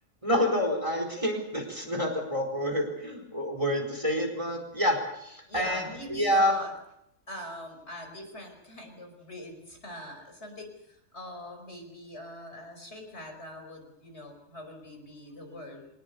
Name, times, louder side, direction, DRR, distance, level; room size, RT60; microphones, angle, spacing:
voice 1, 0.2-5.8 6.1-6.5, equal, 20° right, 3 dB, 4.4 m, -28 dB
voice 2, 5.5-6.7 7.3-15.9, equal, 50° left, 4 dB, 5.3 m, -42 dB
24.5 x 20.5 x 6.8 m, 0.79 s
omnidirectional pair, 1.5 m